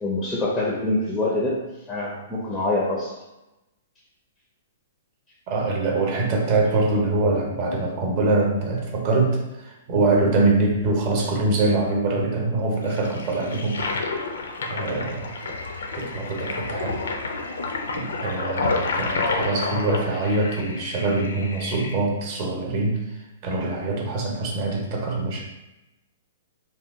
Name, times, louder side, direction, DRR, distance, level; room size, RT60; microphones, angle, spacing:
voice 1, 0.0-3.2, left 2 dB, 10° left, -4 dB, 0.4 m, -25 dB
voice 2, 5.5-13.9 14.7-15.3 16.0-17.0 17.9-23.0 23.4-25.4, right 2 dB, 35° right, -1 dB, 0.7 m, -24 dB
Toilet flush, 12.8-21.9, left 3 dB, 85° left, 0.5 m, -30 dB
2.8 x 2.2 x 3.5 m, 0.97 s
hypercardioid pair, 160°, 0 cm